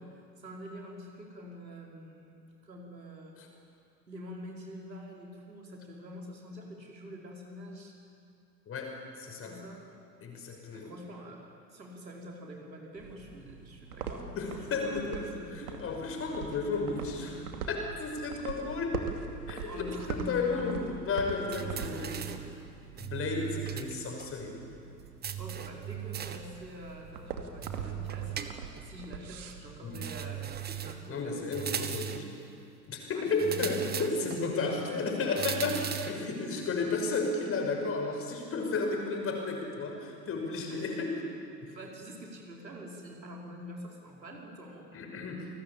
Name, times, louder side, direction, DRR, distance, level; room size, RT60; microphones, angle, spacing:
voice 1, 0.0-3.4 4.1-7.9 9.4-9.8 10.7-15.7 19.6-20.9 21.5-22.5 25.4-28.5 28.8-31.4 33.1-35.9 36.4-36.9 40.7-41.0 41.6-44.9, equal, 80° right, -1 dB, 5.0 m, -46 dB
voice 2, 8.7-9.6 10.2-10.9 14.3-15.2 15.5-19.0 19.5-22.3 23.0-24.6 29.8-30.0 31.1-32.4 32.9-35.8 36.1-41.2 41.6-41.7 44.9-45.5, left 3 dB, 25° left, 2 dB, 5.9 m, -33 dB
sound 1, 12.9-30.6, right 6 dB, 60° right, 2.7 m, -43 dB
sound 2, 21.5-22.5 23.0-23.9 24.2-24.3 25.2-26.5 27.6-28.9 29.9-31.1 31.5-32.3 33.4-34.4 35.4-36.2, right 10 dB, 20° right, 1.5 m, -37 dB
29.0 x 19.5 x 8.7 m, 2.5 s
figure-of-eight pair, 90°, 50 cm